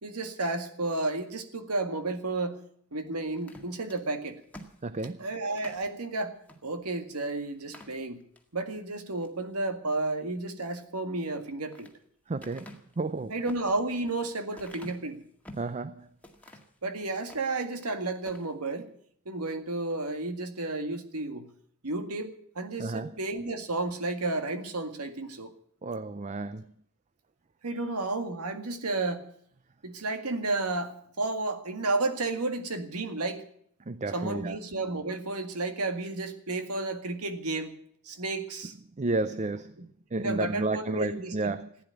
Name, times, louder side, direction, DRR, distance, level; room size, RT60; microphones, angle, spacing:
voice 1, 0.0-2.6 2.9-4.4 5.2-8.2 8.5-11.9 13.3-15.2 16.8-18.9 19.3-21.5 21.8-25.5 27.6-29.3 29.8-33.4 34.1-37.7 38.0-38.7 39.8-39.9 40.2-41.5, right 2 dB, 90° right, 1.9 m, -32 dB
sound 1, 3.4-5.9 6.4-6.6 7.0-7.1 7.5-8.5 9.0-9.4 11.2-12.0 12.4-15.7 16.2-16.8 17.2-17.9 18.2-18.5, left 1 dB, 5° left, 1.9 m, -50 dB
voice 2, 4.8-5.3 12.3-12.7 13.0-13.3 15.6-16.1 22.8-23.1 25.8-26.7 33.9-34.6 39.0-39.7 40.1-41.7, right 2 dB, 30° right, 0.5 m, -31 dB
15.5 x 9.8 x 9.1 m
head